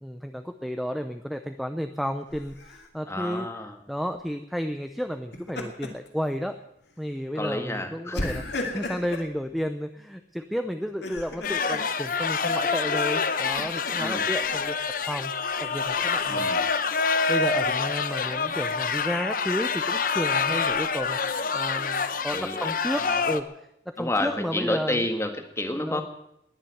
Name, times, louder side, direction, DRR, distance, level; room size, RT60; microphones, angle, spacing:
voice 1, 0.0-3.5 3.9-6.6 7.0-8.4 8.7-14.8 15.1-15.3 15.6-16.5 17.3-25.0 25.7-26.0, equal, ahead, 7 dB, 0.6 m, -32 dB
Laughter, 2.3-2.9 5.1-6.1 6.5-6.7 8.1-9.3 10.8-11.9 12.9-14.2, left 2 dB, 70° left, 2.6 m, -35 dB
voice 2, 3.1-3.8 7.4-8.3 14.0-14.2 16.3-16.6 22.3-22.6 24.0-26.0, left 1 dB, 15° left, 5 dB, 1.8 m, -29 dB
sound 1, 11.4-23.4, left 5 dB, 50° left, 0.9 m, -27 dB
20.5 x 7.4 x 9.4 m, 0.81 s
head